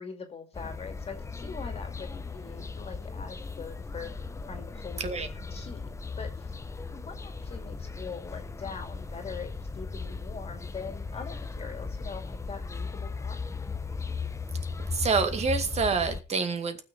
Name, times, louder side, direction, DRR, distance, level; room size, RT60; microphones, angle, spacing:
voice 1, 0.0-5.9 6.2-6.6 6.9-13.6, left 5 dB, 35° left, 5 dB, 2.5 m, -43 dB
sound 1, 0.5-16.2, left 4 dB, 15° left, 0.8 m, -37 dB
voice 2, 14.8-16.8, right 5 dB, 40° right, 7 dB, 2.0 m, -27 dB
19.5 x 6.5 x 4.1 m, 0.31 s
cardioid pair, 110°, 17 cm